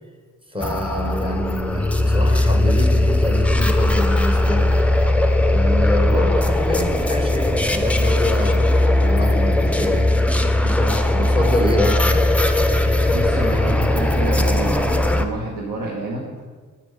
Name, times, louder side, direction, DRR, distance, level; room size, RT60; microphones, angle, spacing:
voice 1, 0.5-4.7 5.5-10.1 10.6-12.2, left 1 dB, 15° right, 2 dB, 1.3 m, -26 dB
sound 1, 0.6-15.2, left 1 dB, 5° left, 0.6 m, -18 dB
voice 2, 13.1-16.3, right 2 dB, 65° right, -3 dB, 1.3 m, -28 dB
6.1 x 5.8 x 5.0 m, 1.4 s
supercardioid pair, 50°, 36 cm